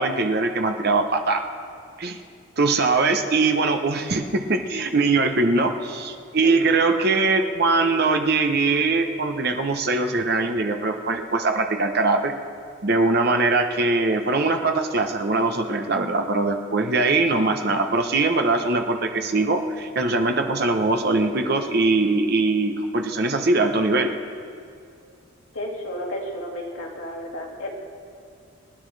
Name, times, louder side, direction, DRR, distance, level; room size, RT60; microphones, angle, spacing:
voice 1, 0.0-1.4 2.0-2.2 2.6-12.3 12.8-24.1, right 3 dB, 50° right, 4 dB, 0.9 m, -22 dB
voice 2, 25.5-27.7, left 1 dB, 75° left, -2 dB, 2.4 m, -32 dB
26.5 x 10.5 x 3.4 m, 2.3 s
head